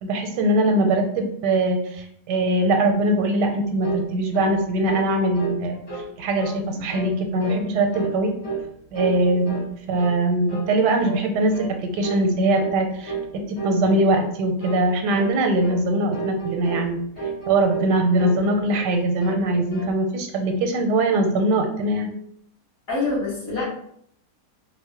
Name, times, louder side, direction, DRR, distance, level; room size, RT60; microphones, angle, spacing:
voice 1, 0.0-5.8 6.2-8.3 8.9-9.6 9.9-17.0 17.5-22.1, right 1 dB, 85° right, 4 dB, 1.2 m, -22 dB
sound 1, 3.8-4.1 4.3-4.6 4.8-6.1 6.4-6.6 6.9-7.1 7.4-7.6 7.9-8.7 8.9-9.7 10.0-10.2 10.5-10.7 11.0-11.2 11.5-11.7 12.0-12.3 12.5-12.8 13.0-13.3 13.6-13.8 14.1-14.3 14.6-14.8 15.1-15.3 15.6-15.8 16.1-16.9 17.2-17.9 18.2-18.9 19.2-19.9, right 5 dB, 80° left, 2.4 m, -32 dB
voice 2, 22.9-23.6, left 3 dB, 55° left, -8 dB, 2.0 m, -25 dB
4.6 x 2.1 x 2.8 m, 0.69 s
omnidirectional pair, 1.8 m